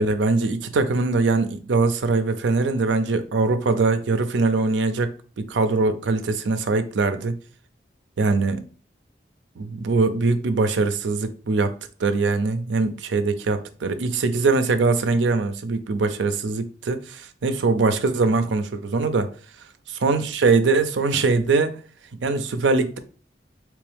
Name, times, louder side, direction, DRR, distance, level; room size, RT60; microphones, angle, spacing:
voice 1, 0.0-7.3 8.2-8.6 9.6-11.7 12.0-19.3 20.0-21.7 22.2-23.0, right 3 dB, 90° right, 0.5 m, -22 dB
3.5 x 3.1 x 3.4 m
head